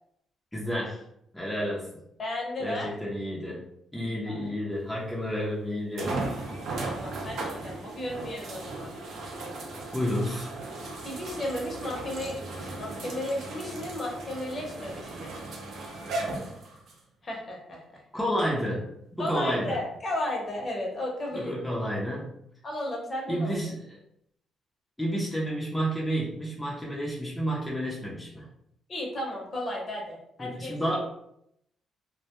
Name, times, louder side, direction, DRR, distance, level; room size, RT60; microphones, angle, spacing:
voice 1, 0.5-1.0 1.3-1.9 2.6-3.6 3.9-6.3 9.9-10.5 18.1-18.9 19.1-19.8 21.3-22.3 23.3-24.0 25.0-28.5 30.4-31.0, equal, 5° left, -5 dB, 0.6 m, -30 dB
voice 2, 2.2-2.9 4.0-4.4 6.8-8.9 11.0-15.3 17.2-18.0 19.2-21.8 22.6-23.6 28.9-31.0, left 1 dB, 40° left, -2 dB, 0.7 m, -34 dB
sound 1, 4.9-5.0 6.0-17.0 17.7-17.8 21.3-21.4, right 2 dB, 70° right, 0.5 m, -37 dB
2.1 x 2.1 x 2.9 m, 0.76 s
cardioid pair, 90°, 0 cm